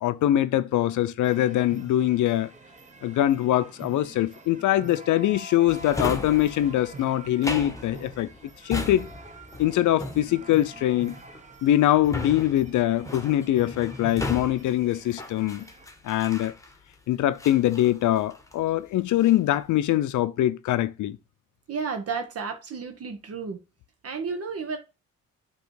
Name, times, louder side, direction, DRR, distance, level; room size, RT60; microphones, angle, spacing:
voice 1, 0.0-2.5 3.0-8.3 8.6-9.1 9.6-11.2 11.6-15.7 16.0-16.5 17.1-21.2, left 13 dB, 75° left, 0.6 m, -23 dB
sound 1, 1.2-15.9, right 3 dB, 25° right, 1.1 m, -46 dB
Drawer open or close, 5.7-16.9 17.4-18.7 19.0-19.5, left 2 dB, 10° left, 1.2 m, -36 dB
voice 2, 21.7-23.6 24.0-24.8, right 5 dB, 50° right, 1.3 m, -32 dB
8.0 x 3.1 x 4.7 m
cardioid pair, 90°, 30 cm